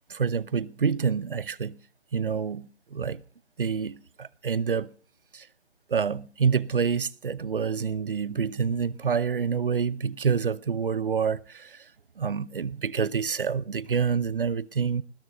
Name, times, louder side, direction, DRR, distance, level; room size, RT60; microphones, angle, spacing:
voice 1, 0.1-1.8 2.1-3.2 3.6-4.9 5.3-5.5 5.9-11.9 12.2-15.0, right 6 dB, 50° right, 0.8 m, -27 dB
20.0 x 11.0 x 6.3 m
figure-of-eight pair, 160°, 34 cm